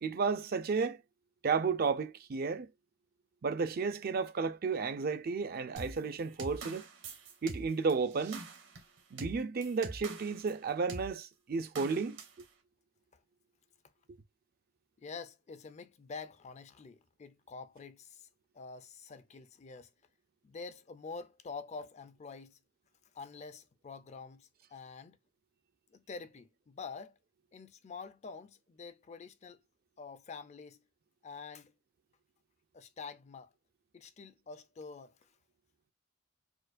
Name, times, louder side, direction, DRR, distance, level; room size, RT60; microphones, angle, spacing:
voice 1, 0.0-1.0 1.4-2.7 3.4-6.8 7.4-8.5 9.1-12.2, right 5 dB, 50° right, 0.4 m, -32 dB
sound 1, 5.8-10.5 10.9-11.1 11.8-12.4, right 3 dB, 65° right, 1.0 m, -44 dB
voice 2, 15.0-18.3 18.5-19.9 20.4-22.6 23.1-25.2 25.9-27.2 27.5-29.6 30.0-30.8 31.2-31.7 32.7-33.5 33.9-35.3, left 4 dB, 35° left, 0.4 m, -47 dB
4.4 x 2.2 x 2.5 m
head